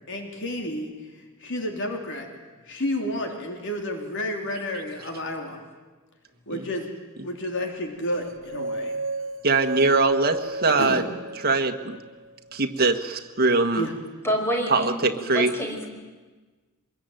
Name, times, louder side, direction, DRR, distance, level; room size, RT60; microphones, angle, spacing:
voice 1, 0.1-0.9 1.4-2.3 2.7-5.6 6.5-6.9 7.2-8.9 10.5-11.1 13.7-13.9, left 1 dB, 60° left, 3 dB, 3.4 m, -30 dB
sound 1, 8.2-12.3, right 2 dB, 60° right, 0.8 m, -31 dB
voice 2, 9.4-11.0 11.4-12.0 12.5-13.9 14.7-15.5, right 3 dB, 45° right, 6 dB, 1.6 m, -22 dB
voice 3, 14.2-15.9, equal, 10° left, 2 dB, 4.9 m, -28 dB
24.5 x 21.5 x 9.2 m, 1.3 s
head